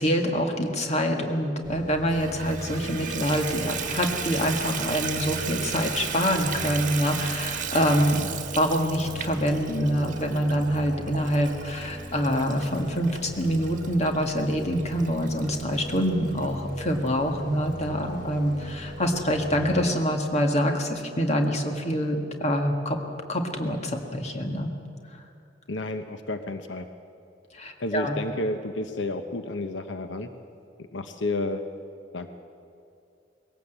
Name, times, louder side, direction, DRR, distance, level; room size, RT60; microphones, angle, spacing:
voice 1, 0.0-23.0 23.3-24.7 27.5-28.2, equal, 40° left, 3 dB, 2.0 m, -25 dB
sound 1, 1.6-19.9, equal, 25° right, 3.7 m, -40 dB
Water tap faucet / Bathtub (filling or washing), 2.1-16.5 17.1-17.2 17.7-17.8 18.0-18.1, right 8 dB, 45° right, 1.6 m, -36 dB
voice 2, 25.7-26.9 27.8-30.3 30.9-31.6 32.1-32.3, left 2 dB, 85° left, 8 dB, 1.0 m, -31 dB
21.0 x 17.5 x 8.1 m, 2.5 s
head